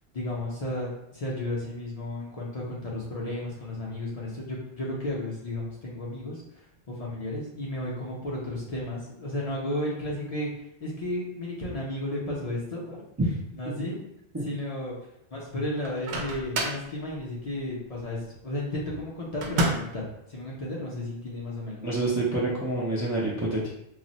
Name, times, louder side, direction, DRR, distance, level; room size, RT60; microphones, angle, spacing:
voice 1, 0.1-10.5 10.8-13.1 13.6-14.0 14.4-14.9 15.3-21.9, left 1 dB, 45° left, -5 dB, 0.6 m, -33 dB
Microwave oven, 15.8-16.9 19.4-20.0, right 2 dB, 85° right, 0.9 m, -28 dB
voice 2, 21.8-23.7, right 2 dB, 30° right, -6 dB, 0.3 m, -27 dB
2.4 x 2.0 x 3.9 m, 0.79 s
omnidirectional pair, 1.1 m